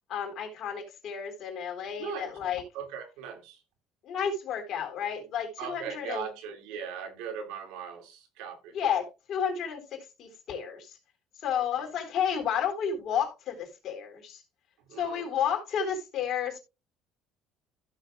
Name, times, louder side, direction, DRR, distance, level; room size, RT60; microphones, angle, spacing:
voice 1, 0.1-2.6 4.0-6.3 8.7-11.0 11.4-14.4 15.0-16.6, left 8 dB, 50° left, 3.9 m, -31 dB
voice 2, 2.0-2.4 2.7-3.6 5.6-8.7 14.9-15.3, right 7 dB, 85° right, 2.3 m, -39 dB
15.5 x 6.6 x 2.4 m
cardioid pair, 130°, 0 cm